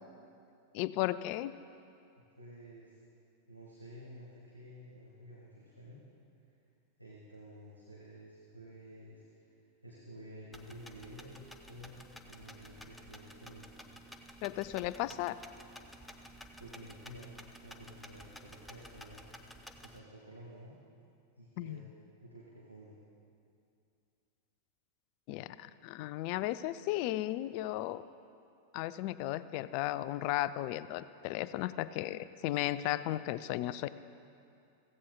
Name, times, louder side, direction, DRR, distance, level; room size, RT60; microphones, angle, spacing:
voice 1, 0.7-1.5 14.4-15.4 21.6-21.8 25.3-28.0 28.7-33.9, left 15 dB, 45° left, 15 dB, 0.3 m, -35 dB
voice 2, 2.3-3.0 3.5-6.0 6.4-6.5 7.0-13.6 16.6-17.3 17.6-19.2 19.8-20.8 21.4-21.8 22.2-23.0, equal, 90° right, -5 dB, 1.5 m, -52 dB
sound 1, 10.5-20.0, equal, 5° left, 0.7 m, -52 dB
15.5 x 15.5 x 2.2 m, 2.5 s
figure-of-eight pair, 90°, 0 cm